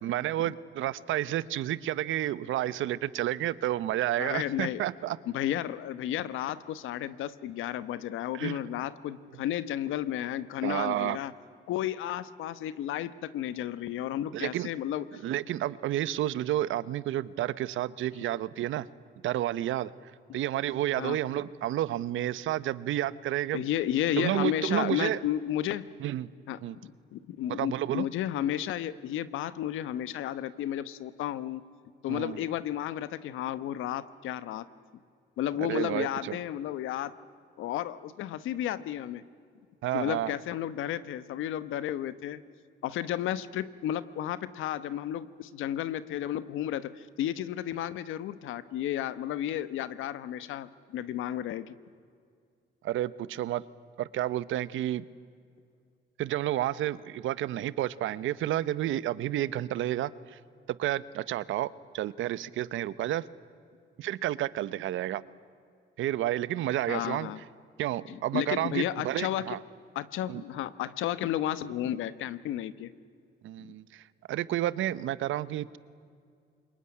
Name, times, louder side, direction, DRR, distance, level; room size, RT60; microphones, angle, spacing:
voice 1, 0.0-5.2 8.3-8.6 10.6-11.2 14.3-14.7 15.1-18.9 19.2-19.9 20.3-23.6 24.2-25.2 26.0-26.3 26.6-26.8 27.5-28.1 32.1-32.4 35.6-36.4 39.8-40.3 52.8-53.6 54.0-55.0 56.2-60.4 60.8-63.2 64.0-65.2 66.0-67.3 67.8-69.6 70.3-70.4 73.4-75.8, right 13 dB, 80° right, 18 dB, 0.9 m, -30 dB
voice 2, 4.2-4.8 5.3-11.3 11.7-15.2 20.3-20.4 21.0-21.2 23.5-25.9 26.5-31.6 32.0-34.7 35.4-37.1 37.6-39.2 39.9-42.4 42.8-51.7 66.9-67.4 68.1-69.6 69.9-72.9 73.6-73.7, left 11 dB, 85° left, 15 dB, 1.1 m, -33 dB
26.5 x 22.5 x 9.8 m, 2.2 s
cardioid pair, 90°, 20 cm